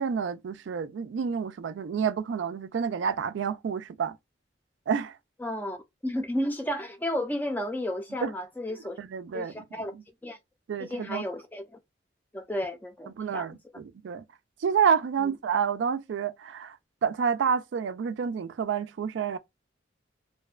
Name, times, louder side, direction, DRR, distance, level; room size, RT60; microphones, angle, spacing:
voice 1, 0.0-4.2 4.9-5.2 8.2-8.3 9.0-9.5 9.9-10.0 10.7-11.2 13.2-14.2 14.6-16.8 17.0-19.4, right 6 dB, 75° right, 0.3 m, -29 dB
voice 2, 5.4-5.8 6.0-9.0 9.3-9.9 10.2-10.4 10.8-11.6 12.3-13.5 15.2-15.3, left 1 dB, 10° left, 0.4 m, -32 dB
2.5 x 2.1 x 2.3 m
head